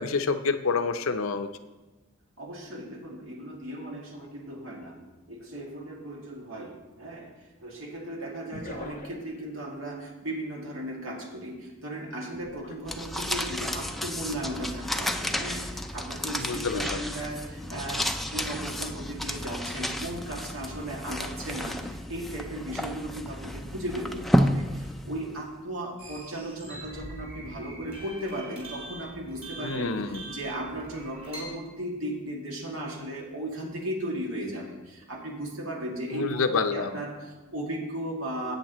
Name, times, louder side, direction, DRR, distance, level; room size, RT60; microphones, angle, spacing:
voice 1, 0.0-1.5 16.4-17.0 29.6-30.3 36.1-37.0, left 4 dB, 75° left, 9 dB, 0.6 m, -28 dB
voice 2, 2.4-5.0 5.3-7.3 7.6-38.5, right 1 dB, 70° right, -1 dB, 2.3 m, -36 dB
sound 1, 5.6-5.7 8.5-9.4 12.3-13.5 14.0-14.3, left 2 dB, 40° left, 0.7 m, -44 dB
sound 2, 12.8-25.4, equal, ahead, 0.4 m, -31 dB
sound 3, 26.0-31.4, right 1 dB, 30° right, 3.5 m, -43 dB
14.0 x 8.6 x 3.0 m, 1.1 s
head